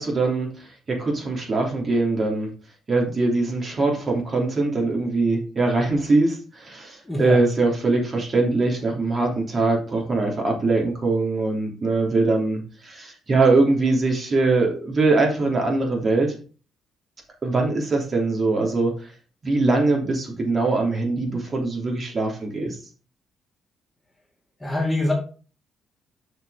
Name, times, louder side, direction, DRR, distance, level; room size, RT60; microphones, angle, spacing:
voice 1, 0.0-2.5 2.9-16.3 17.4-19.1 19.4-22.8, right 3 dB, 40° right, 0 dB, 3.2 m, -22 dB
voice 2, 7.1-7.4 24.6-25.1, left 2 dB, 15° left, 1 dB, 2.2 m, -23 dB
6.7 x 4.8 x 5.1 m, 0.37 s
cardioid pair, 90°, 0 cm